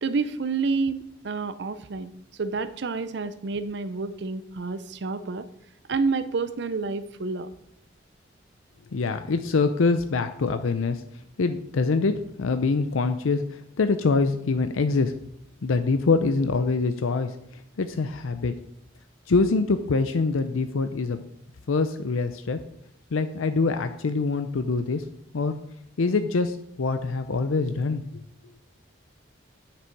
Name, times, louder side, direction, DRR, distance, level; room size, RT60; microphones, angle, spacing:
voice 1, 0.0-2.1 2.4-5.5 5.9-7.5, right 4 dB, 60° right, 12 dB, 0.5 m, -29 dB
voice 2, 8.9-11.0 11.4-15.1 15.6-18.5 19.3-21.3 21.7-22.6 23.1-25.1 25.3-25.6 26.0-28.2, left 4 dB, 90° left, 9 dB, 0.6 m, -24 dB
10.0 x 6.1 x 4.6 m, 0.75 s
head